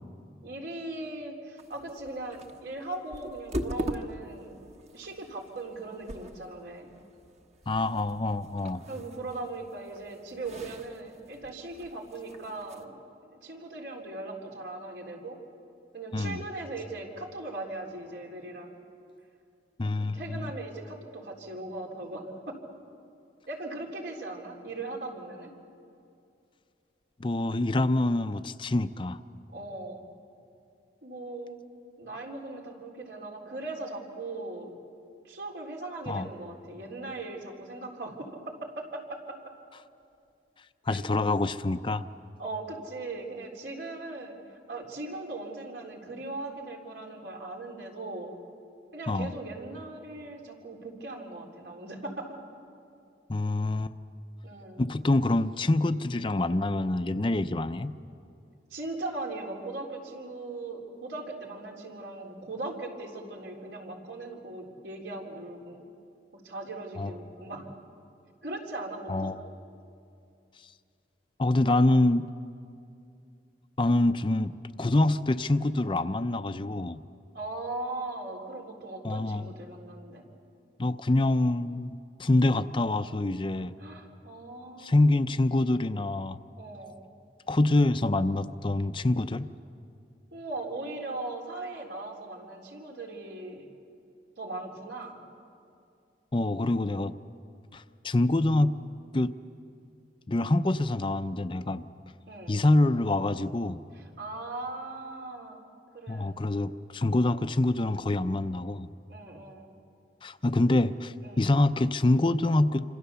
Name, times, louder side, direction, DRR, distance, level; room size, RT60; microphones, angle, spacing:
voice 1, 0.4-4.7 4.9-6.9 8.9-15.4 15.9-18.7 19.9-22.6 23.5-25.5 29.5-30.1 31.0-31.6 32.0-34.7 35.2-39.4 40.9-41.0 42.4-44.4 44.7-48.3 48.9-52.4 54.4-54.9 58.7-65.8 66.3-67.7 68.4-69.3 77.3-80.2 83.8-85.1 86.6-87.0 90.3-93.7 94.4-95.2 102.3-102.6 103.9-105.6 105.9-106.3 109.1-109.7 111.2-111.5, right 2 dB, 75° right, 0 dB, 3.8 m, -39 dB
sound 1, 1.6-12.8, equal, 40° right, 1.3 m, -42 dB
voice 2, 7.7-8.8 16.1-16.4 19.8-20.5 27.2-29.2 36.1-36.3 40.9-42.0 49.1-49.3 53.3-53.9 54.8-57.9 67.0-67.1 69.1-69.4 71.4-72.3 73.8-74.5 74.8-77.0 79.0-79.5 80.8-81.9 82.2-83.7 84.8-86.4 87.5-89.5 96.3-97.1 97.7-98.7 99.1-99.3 100.3-101.9 102.5-103.8 106.1-108.9 110.2-112.8, left 2 dB, 30° left, 11 dB, 0.5 m, -26 dB
27.5 x 26.0 x 7.0 m, 2.5 s
head